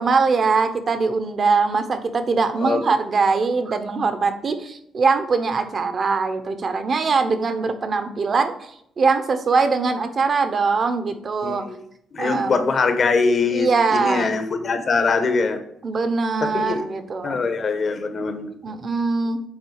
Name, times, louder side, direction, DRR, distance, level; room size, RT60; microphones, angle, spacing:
voice 1, 0.0-11.6 12.2-12.6 13.5-14.3 15.8-17.4 18.6-19.4, right 4 dB, 45° right, 9 dB, 0.9 m, -22 dB
voice 2, 11.4-11.8 12.1-15.6 16.4-16.8 17.2-18.5, left 4 dB, 45° left, 7 dB, 1.0 m, -22 dB
7.3 x 4.3 x 4.8 m, 0.72 s
cardioid pair, 90°, 0 cm